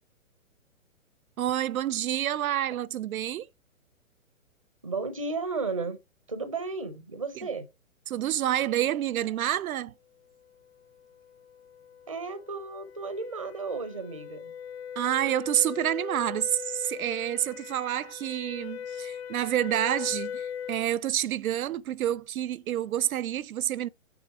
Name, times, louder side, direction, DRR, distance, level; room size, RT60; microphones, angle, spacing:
voice 1, 1.4-3.5 7.4-7.5 8.1-9.9 15.0-23.9, right 12 dB, 85° right, 0.5 m, -28 dB
voice 2, 4.8-6.0 6.3-7.7 12.1-14.5, right 4 dB, 25° right, 0.5 m, -34 dB
sound 1, 11.0-20.9, left 8 dB, 50° left, 0.5 m, -40 dB
6.2 x 3.7 x 4.6 m
hypercardioid pair, 175°, 41 cm